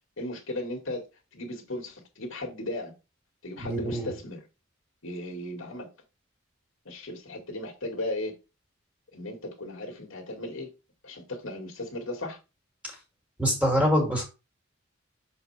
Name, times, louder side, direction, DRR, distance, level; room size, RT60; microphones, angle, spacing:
voice 1, 0.2-1.1 1.3-2.9 3.4-4.4 5.0-5.9 6.9-8.3 9.1-10.7 11.0-12.4, left 1 dB, 70° left, 2.2 m, -36 dB
voice 2, 3.6-4.1 12.8-12.9 13.4-14.2, equal, 5° right, 2.7 m, -25 dB
7.0 x 4.3 x 3.4 m
head